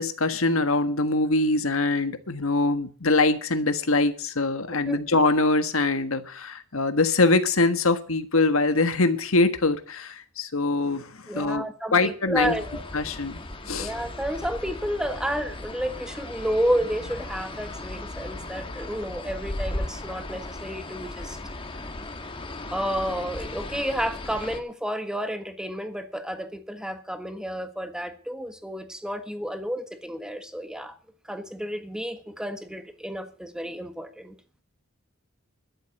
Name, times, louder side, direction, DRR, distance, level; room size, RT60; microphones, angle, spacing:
voice 1, 0.0-11.6 11.9-12.6 12.9-13.9, left 3 dB, 80° left, 1.5 m, -23 dB
voice 2, 11.3-12.8 13.8-21.4 22.7-31.0 31.2-34.3, equal, 5° right, 1.5 m, -31 dB
sound 1, 12.3-24.6, left 2 dB, 25° left, 1.4 m, -36 dB
12.5 x 7.8 x 9.2 m
head